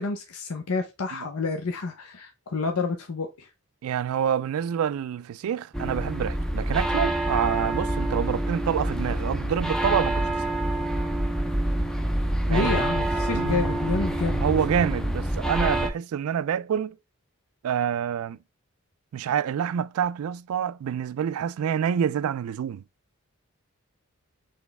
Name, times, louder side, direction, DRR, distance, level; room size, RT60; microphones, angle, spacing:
voice 1, 0.0-3.5 12.5-14.4, left 4 dB, 85° left, 0.7 m, -29 dB
voice 2, 3.8-10.4 12.5-12.8 13.3-13.7 14.4-17.0 17.6-18.4 19.1-22.8, right 8 dB, 75° right, 0.3 m, -27 dB
sound 1, 5.7-15.9, right 1 dB, 5° left, 0.3 m, -26 dB
4.1 x 3.3 x 3.4 m
head